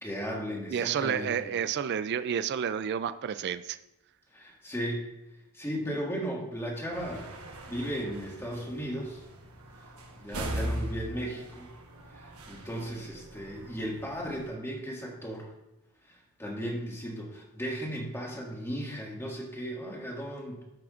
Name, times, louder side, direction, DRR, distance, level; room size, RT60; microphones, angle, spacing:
voice 1, 0.0-1.5 4.3-5.1 5.5-7.4 7.7-9.2 10.2-11.7 12.1-15.5 16.4-20.6, equal, 10° left, -3 dB, 1.8 m, -36 dB
voice 2, 0.7-3.8, right 8 dB, 50° right, 12 dB, 0.3 m, -30 dB
sound 1, 6.9-14.5, equal, 70° right, 1.1 m, -40 dB
13.5 x 6.0 x 2.5 m, 0.90 s
head